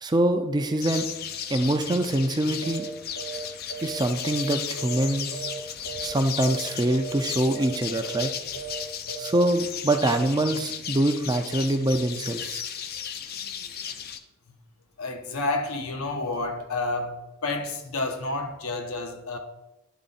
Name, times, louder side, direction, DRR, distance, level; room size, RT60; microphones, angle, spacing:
voice 1, 0.0-1.0 1.5-2.9 3.8-5.5 6.0-8.3 9.2-12.6, right 1 dB, 20° right, 0.4 m, -24 dB
sound 1, 0.8-14.2, left 8 dB, 45° left, 0.4 m, -35 dB
sound 2, 2.6-2.9 3.2-3.4 3.7-5.1 5.3-5.6 5.8-6.1 6.4-6.7 6.9-7.2 7.5-7.7 8.0-8.3 8.5-8.8 9.1-9.4, right 6 dB, 90° left, 1.3 m, -36 dB
voice 2, 15.0-19.4, left 2 dB, 75° left, 0.8 m, -30 dB
10.0 x 3.7 x 4.1 m
head